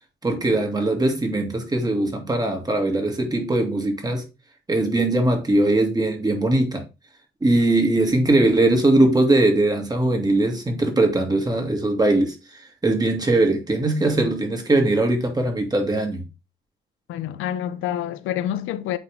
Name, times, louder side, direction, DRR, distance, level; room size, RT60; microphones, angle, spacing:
voice 1, 0.2-4.2 4.7-6.8 7.4-12.4 12.8-16.2, right 2 dB, 20° right, 2.2 m, -20 dB
voice 2, 17.1-19.0, left 11 dB, 90° left, 0.7 m, -27 dB
8.5 x 3.7 x 3.5 m
cardioid pair, 90°, 20 cm